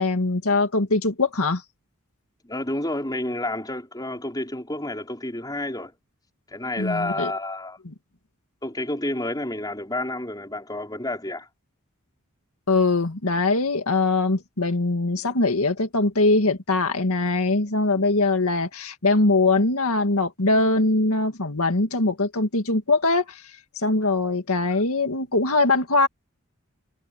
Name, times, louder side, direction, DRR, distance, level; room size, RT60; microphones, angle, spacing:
voice 1, 0.0-1.6 6.8-7.3 7.8-7.9 12.7-26.1, left 2 dB, 85° left, 2.0 m, -22 dB
voice 2, 2.4-5.9 6.5-7.8 8.6-11.5, left 1 dB, 20° left, 5.0 m, -30 dB
head